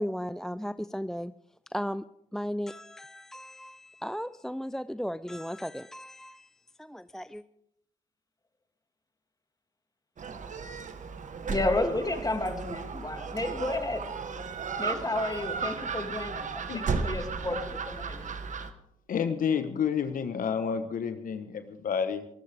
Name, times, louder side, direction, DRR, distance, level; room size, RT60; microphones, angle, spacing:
voice 1, 0.0-1.3 1.7-2.0 2.3-6.5 6.8-7.4, equal, 5° left, 14 dB, 0.5 m, -35 dB
Gull seagull, 10.2-18.7, right 5 dB, 55° right, 1.5 m, -35 dB
voice 2, 11.5-14.0 14.8-18.3, left 2 dB, 25° left, 5 dB, 2.7 m, -32 dB
voice 3, 16.7-17.0 18.3-18.4 19.1-22.3, left 7 dB, 65° left, 9 dB, 1.2 m, -30 dB
25.0 x 13.0 x 3.6 m, 0.72 s
hypercardioid pair, 45°, 16 cm